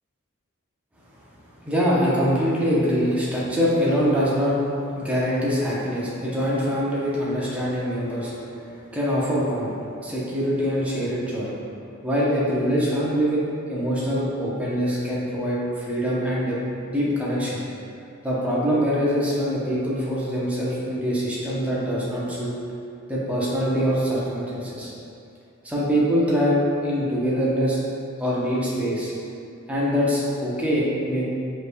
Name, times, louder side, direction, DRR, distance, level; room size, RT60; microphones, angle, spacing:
voice 1, 1.6-4.6 5.0-8.3 8.7-9.7 10.0-11.5 12.0-13.4 13.7-16.6 16.8-17.6 18.2-22.5 23.1-24.9 25.6-27.8 28.2-29.1 29.7-31.3, equal, 5° right, -7 dB, 0.6 m, -24 dB
5.1 x 3.1 x 2.2 m, 2.6 s
head